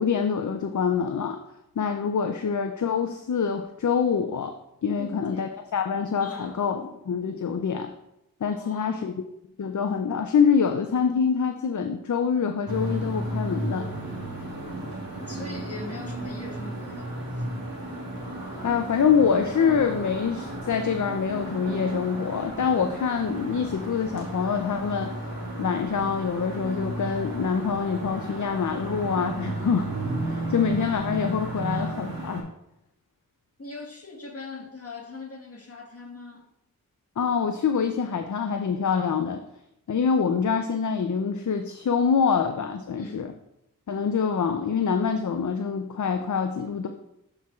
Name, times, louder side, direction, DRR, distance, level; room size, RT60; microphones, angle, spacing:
voice 1, 0.0-1.4 1.8-4.5 4.8-6.8 7.1-7.9 8.4-9.1 9.6-13.9 18.6-25.1 25.6-29.9 30.2-32.5 37.2-39.4 39.9-43.3 43.9-46.9, left 6 dB, 60° left, 6 dB, 0.5 m, -25 dB
voice 2, 5.0-5.5 6.2-7.0 8.5-9.2 14.3-14.7 15.3-17.5 31.6-32.0 33.6-36.5 42.9-43.3 46.2-46.3, left 3 dB, 45° left, 0 dB, 1.5 m, -41 dB
sound 1, 12.7-32.4, right 1 dB, 85° right, 1.5 m, -34 dB
12.0 x 4.4 x 2.4 m, 0.82 s
wide cardioid pair, 50°, 35 cm